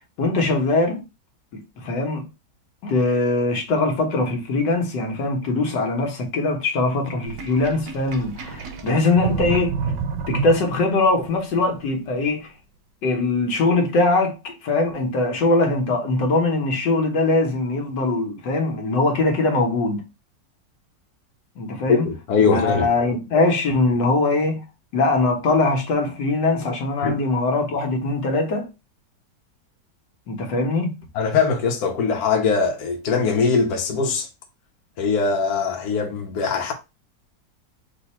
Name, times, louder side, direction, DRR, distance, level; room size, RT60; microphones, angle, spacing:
voice 1, 0.2-1.0 1.5-2.3 2.8-9.7 10.3-12.5 13.0-20.0 21.6-22.1 22.4-24.6 24.9-28.7 30.3-30.9, left 2 dB, 80° left, 1.6 m, -21 dB
Sink (filling or washing), 7.3-11.0, right 5 dB, 85° right, 1.5 m, -29 dB
voice 2, 21.9-22.9 27.0-27.2 31.1-34.3 35.0-36.7, left 5 dB, 65° left, 1.3 m, -21 dB
4.0 x 2.7 x 4.2 m
omnidirectional pair, 1.9 m